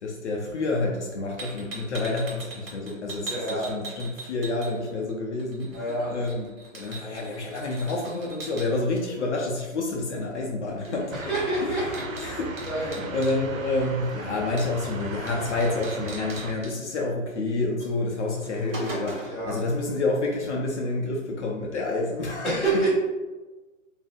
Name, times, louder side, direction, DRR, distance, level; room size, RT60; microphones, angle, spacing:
voice 1, 0.0-5.8 6.1-11.2 11.6-11.8 12.2-22.5, left 2 dB, 60° left, -1 dB, 0.6 m, -29 dB
sound 1, 1.4-5.1 5.4-8.7 10.8-11.0 11.2-13.4 14.6-14.9 15.3-15.4 15.6-16.7 17.8-17.9 18.3-19.5, right 2 dB, 50° right, 1.2 m, -40 dB
voice 2, 3.2-3.7 5.7-6.2 11.2-12.0 12.6-13.1 19.3-19.6 22.4-22.9, right 2 dB, ahead, -10 dB, 1.3 m, -27 dB
Giggle, 5.7-6.3 7.1-7.6 8.3-8.4 8.7-9.5 10.6-11.3 12.4-13.1 14.4-14.8 16.3-16.4, equal, 30° right, 0.8 m, -47 dB
sound 2, 11.1-16.5, right 3 dB, 85° right, 0.6 m, -37 dB
2.5 x 2.1 x 3.6 m, 1.2 s
hypercardioid pair, 135°, 39 cm